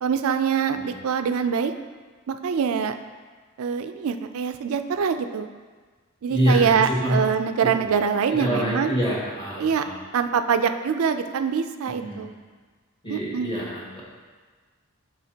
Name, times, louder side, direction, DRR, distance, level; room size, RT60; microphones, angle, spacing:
voice 1, 0.0-1.7 2.3-2.9 3.6-5.5 6.2-8.9 9.6-9.8 10.1-12.3 13.1-13.7, right 6 dB, 75° right, 8 dB, 0.4 m, -24 dB
voice 2, 6.3-7.2 7.6-7.9 8.3-10.0 11.9-12.2 13.0-14.0, equal, 25° left, -5 dB, 1.7 m, -26 dB
9.2 x 6.2 x 2.8 m, 1.4 s
head